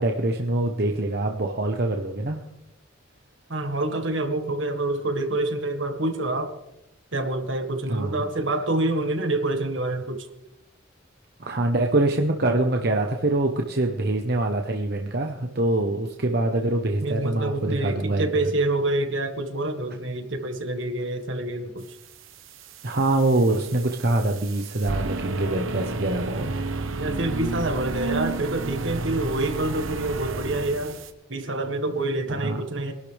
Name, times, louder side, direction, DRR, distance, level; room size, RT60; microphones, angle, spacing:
voice 1, 0.0-2.4 7.9-8.2 11.4-17.5 17.8-18.5 22.8-26.5 32.4-32.6, right 2 dB, 50° right, 3 dB, 1.0 m, -24 dB
voice 2, 3.5-6.5 7.1-10.3 17.0-21.9 27.0-31.0 31.3-32.9, right 2 dB, 70° right, 6 dB, 1.7 m, -27 dB
sound 1, 22.5-31.1, right 3 dB, 85° right, 1.1 m, -32 dB
23.5 x 11.5 x 3.4 m, 0.91 s
head